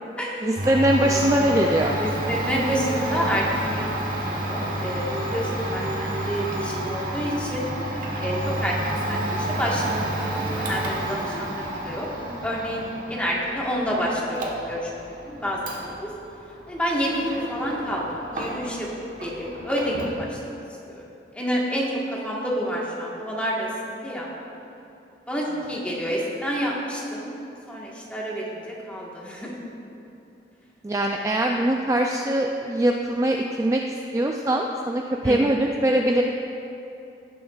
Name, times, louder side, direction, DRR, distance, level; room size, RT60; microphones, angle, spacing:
voice 1, 0.4-1.9 30.8-33.8 34.1-36.2, right 1 dB, 20° right, 1 dB, 0.4 m, -22 dB
Domestic sounds home sounds, 0.5-18.9 19.2-20.2, right 1 dB, 55° right, 1.3 m, -30 dB
voice 2, 2.0-7.7 8.2-12.1 12.4-14.9 15.2-15.8 16.7-18.0 18.3-18.9 19.2-20.4 20.9-21.0 21.3-21.9 22.2-24.3 25.3-27.3 27.7-28.6 28.9-29.5 35.2-35.4, equal, 5° left, -4 dB, 1.4 m, -28 dB
17.5 x 6.9 x 2.4 m, 2.8 s
head